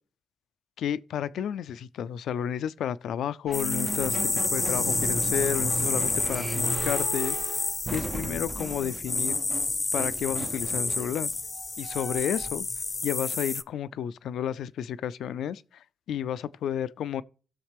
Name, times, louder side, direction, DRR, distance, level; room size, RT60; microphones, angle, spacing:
voice 1, 0.8-4.2 4.5-9.4 9.9-11.3 11.8-12.7 13.0-17.2, left 9 dB, 80° left, 0.3 m, -32 dB
sound 1, 3.5-13.6, left 3 dB, 30° left, 0.5 m, -29 dB
sound 2, 3.5-12.6, right 3 dB, 35° right, 0.4 m, -37 dB
16.0 x 6.4 x 3.4 m
cardioid pair, 70°, 0 cm